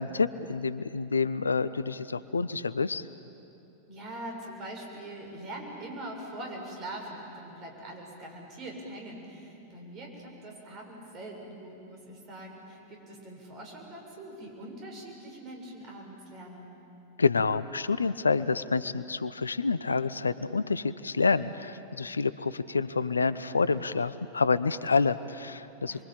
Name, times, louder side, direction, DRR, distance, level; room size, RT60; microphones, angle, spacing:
voice 1, 0.0-3.1 17.2-26.0, left 4 dB, 75° left, 16 dB, 0.6 m, -28 dB
voice 2, 3.9-16.7 25.9-26.0, right 1 dB, 35° right, 0 dB, 6.9 m, -43 dB
28.5 x 23.0 x 8.9 m, 2.8 s
figure-of-eight pair, 90°, 0 cm